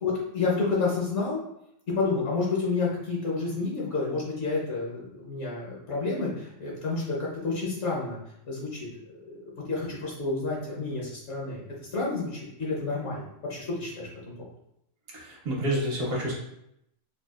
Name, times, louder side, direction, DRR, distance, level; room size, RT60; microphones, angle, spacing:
voice 1, 0.0-1.4 1.9-8.2 8.5-8.9 9.2-11.6 11.9-14.5, left 3 dB, 60° left, -4 dB, 1.1 m, -30 dB
voice 2, 15.1-16.3, right 1 dB, 70° right, -3 dB, 1.3 m, -29 dB
5.1 x 2.4 x 2.4 m, 0.79 s
omnidirectional pair, 1.4 m